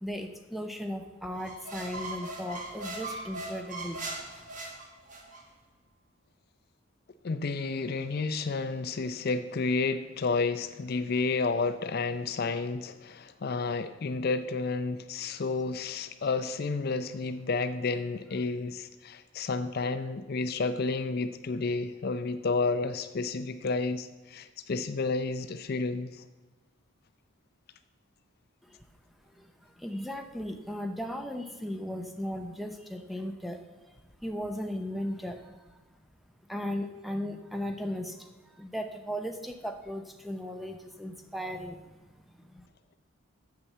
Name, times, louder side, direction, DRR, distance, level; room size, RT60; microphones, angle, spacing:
voice 1, 0.0-4.0 28.6-28.8 29.4-35.8 36.5-42.0 42.4-42.7, equal, ahead, 6 dB, 0.6 m, -37 dB
sound 1, 1.4-5.4, right 2 dB, 35° right, 1.5 m, -39 dB
voice 2, 7.2-26.2, left 4 dB, 45° left, 10 dB, 0.4 m, -31 dB
8.4 x 7.0 x 7.3 m, 1.2 s
head